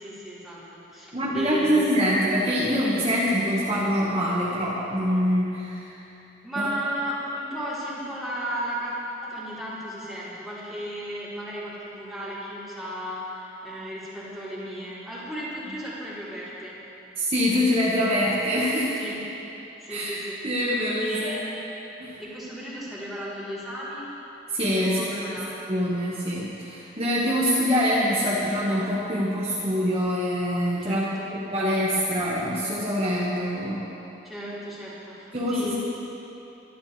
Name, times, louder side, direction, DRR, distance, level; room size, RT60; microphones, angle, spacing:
voice 1, 0.0-1.8 6.4-16.8 18.9-19.1 19.8-20.4 21.0-21.6 22.2-24.1 24.8-25.5 30.8-31.3 34.2-35.8, equal, ahead, -11 dB, 4.1 m, -34 dB
voice 2, 1.1-5.9 6.6-6.7 17.2-19.0 19.9-20.2 20.4-21.4 22.0-22.2 24.5-25.4 25.7-31.0 31.5-33.8 35.3-35.7, equal, 35° right, -8 dB, 1.8 m, -24 dB
23.5 x 12.0 x 3.5 m, 3.0 s
head